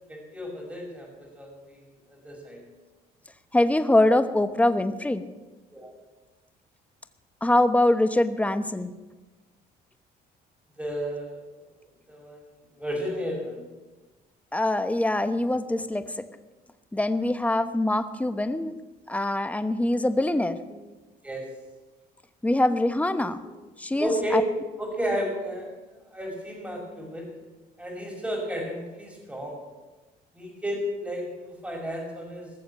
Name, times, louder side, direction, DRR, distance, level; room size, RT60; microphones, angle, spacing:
voice 1, 0.1-1.8 2.1-2.6 5.7-5.9 10.8-11.4 12.1-12.4 12.8-13.6 21.2-21.4 24.0-24.4 24.8-25.7 26.1-27.3 27.8-29.6 30.3-32.5, equal, 5° right, 0 dB, 5.8 m, -32 dB
voice 2, 3.5-5.3 7.4-8.9 14.5-16.3 16.9-18.8 19.1-20.9 22.4-24.4, left 1 dB, 10° left, 10 dB, 1.1 m, -24 dB
19.5 x 7.2 x 8.4 m, 1.2 s
cardioid pair, 110°, 17 cm